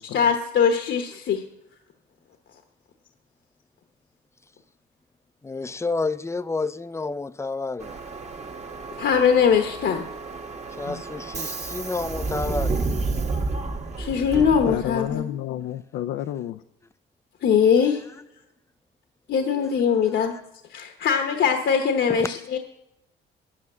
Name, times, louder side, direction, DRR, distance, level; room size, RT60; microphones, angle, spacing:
voice 1, 0.0-1.4 9.0-10.1 14.0-15.2 17.4-18.0 19.3-20.3 20.7-22.6, left 7 dB, 65° left, 1.1 m, -21 dB
voice 2, 5.4-8.0 10.8-12.9 22.1-22.3, left 3 dB, 15° left, 0.4 m, -30 dB
Subway metro underground, 7.8-15.2, right 3 dB, 35° right, 1.2 m, -31 dB
voice 3, 14.7-16.6, left 11 dB, 90° left, 0.5 m, -30 dB
9.3 x 8.7 x 7.4 m
cardioid pair, 90°, 20 cm